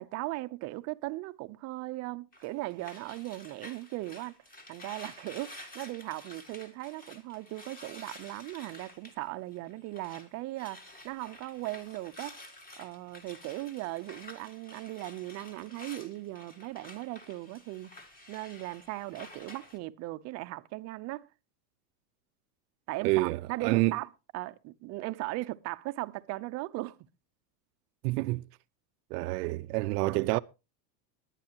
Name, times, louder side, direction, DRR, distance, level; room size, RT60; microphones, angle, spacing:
voice 1, 0.0-4.3 4.7-12.4 12.8-17.9 18.3-21.3 22.9-24.1 24.3-27.0, right 19 dB, 35° right, 0.6 m, -38 dB
sound 1, 2.3-10.3 10.5-19.8, left 1 dB, 20° left, 2.0 m, -50 dB
voice 2, 23.0-23.9 28.0-28.4 29.1-30.4, right 21 dB, 80° right, 0.6 m, -28 dB
21.0 x 9.9 x 2.9 m
supercardioid pair, 155°, 47 cm